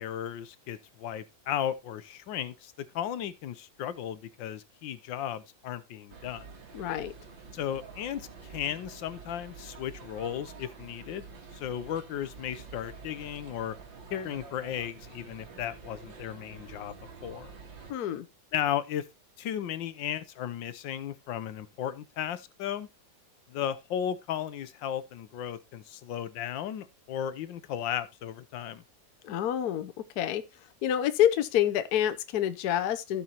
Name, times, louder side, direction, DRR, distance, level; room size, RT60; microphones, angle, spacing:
voice 1, 0.0-6.5 7.5-11.3 11.5-13.7 14.1-17.0 17.2-17.5 18.5-19.0 19.4-22.9 23.5-28.8, left 10 dB, 80° left, 1.5 m, -35 dB
sound 1, 6.1-17.9, right 5 dB, 80° right, 2.5 m, -48 dB
voice 2, 6.7-7.1 17.9-18.3 29.2-30.4 30.8-33.2, left 10 dB, 65° left, 1.2 m, -27 dB
16.0 x 5.5 x 2.9 m
omnidirectional pair, 2.0 m